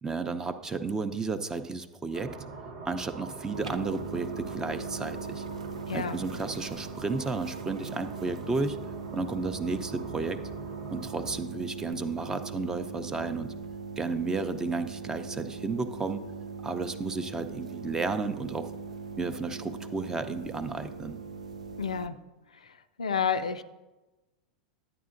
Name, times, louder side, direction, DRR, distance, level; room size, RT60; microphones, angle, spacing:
voice 1, 0.0-2.3 2.8-5.5 5.9-8.8 9.1-10.4 10.9-13.5 14.0-16.2 16.6-18.7 19.2-21.2, right 3 dB, 15° right, 9 dB, 0.5 m, -32 dB
sound 1, 2.1-11.4, right 4 dB, 50° right, 1.0 m, -43 dB
sound 2, 3.5-22.1, right 4 dB, 85° right, 0.4 m, -40 dB
voice 2, 5.9-6.2 21.8-22.2 23.0-23.6, left 6 dB, 80° left, 10 dB, 0.4 m, -29 dB
11.0 x 8.7 x 2.5 m, 1.1 s
hypercardioid pair, 90°, 4 cm